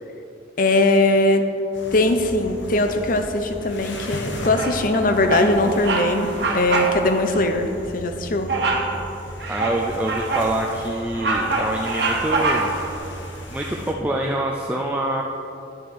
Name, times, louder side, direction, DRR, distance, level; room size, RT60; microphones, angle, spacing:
voice 1, 0.6-1.4 1.9-6.3 6.5-8.5, left 2 dB, 45° left, 7 dB, 0.6 m, -20 dB
sound 1, 1.7-13.9, equal, 80° left, 1.2 m, -36 dB
Bird vocalization bird call bird song, 4.5-4.9 5.3-5.5 5.8-6.1 6.4-6.9 7.3-7.4 8.5-8.9 9.4-10.5 10.9-12.9, right 3 dB, 65° right, 1.1 m, -24 dB
voice 2, 9.5-12.8 13.5-15.2, right 1 dB, 10° right, -1 dB, 0.4 m, -25 dB
9.8 x 6.7 x 4.7 m, 2.8 s
head